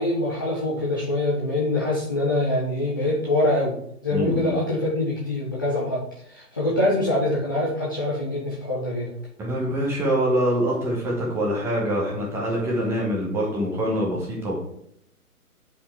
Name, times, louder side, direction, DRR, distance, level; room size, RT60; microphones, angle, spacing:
voice 1, 0.0-3.7 4.0-6.0 6.3-9.1, left 1 dB, 15° left, -5 dB, 0.5 m, -24 dB
voice 2, 4.1-4.6 9.4-14.6, equal, 5° right, -3 dB, 1.0 m, -25 dB
8.7 x 4.9 x 4.6 m, 0.71 s
figure-of-eight pair, 135°, 46 cm